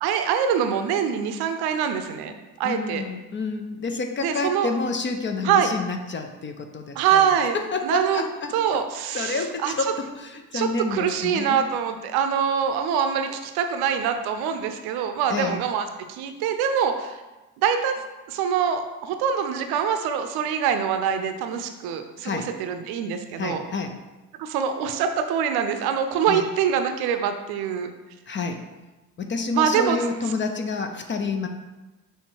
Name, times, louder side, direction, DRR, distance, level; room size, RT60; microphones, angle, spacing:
voice 1, 0.0-2.3 2.6-3.0 4.2-4.7 5.4-5.7 7.0-7.6 7.8-8.2 8.5-9.7 10.5-17.2 17.6-18.0 18.3-23.6 24.4-27.9 29.5-30.1, right 7 dB, 55° right, 7 dB, 0.7 m, -24 dB
voice 2, 2.6-7.3 7.5-8.6 9.1-11.6 15.3-15.6 22.2-22.5 23.4-23.9 26.3-26.4 28.3-28.6 29.2-31.5, left 4 dB, 25° left, 6 dB, 0.5 m, -29 dB
6.4 x 3.4 x 4.6 m, 1.1 s
figure-of-eight pair, 45°, 46 cm